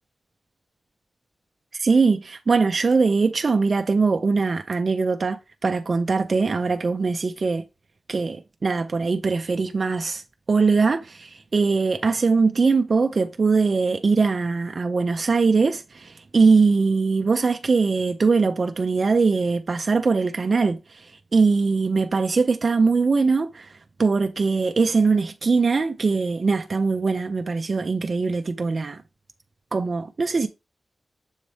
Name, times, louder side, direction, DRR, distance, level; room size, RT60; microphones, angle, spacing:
voice 1, 1.7-7.6 8.1-10.2 10.5-23.7 24.0-29.0 29.7-30.5, right 4 dB, 45° right, 0.4 m, -21 dB
7.1 x 3.3 x 4.1 m
wide cardioid pair, 135°, 0 cm